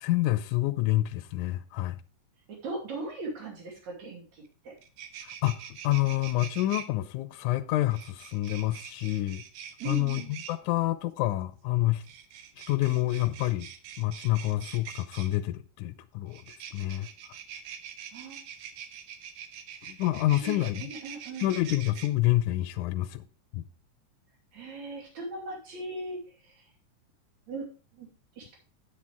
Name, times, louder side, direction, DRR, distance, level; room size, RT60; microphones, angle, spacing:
voice 1, 0.0-2.0 5.2-9.4 9.9-10.2 10.5-12.0 12.6-13.7 14.0-16.4 16.7-17.1 19.9-20.8 21.4-23.3 23.5-23.6, left 16 dB, 80° left, 2.0 m, -28 dB
voice 2, 2.5-4.7 9.8-10.4 18.1-18.4 20.3-21.5 24.5-26.7 27.5-28.1 28.4-28.6, right 2 dB, 60° right, 3.8 m, -39 dB
sound 1, 4.5-4.6 4.8-6.9 7.9-10.6 12.0-15.4 16.3-22.1, right 8 dB, 80° right, 2.4 m, -44 dB
9.1 x 8.5 x 3.3 m
omnidirectional pair, 3.6 m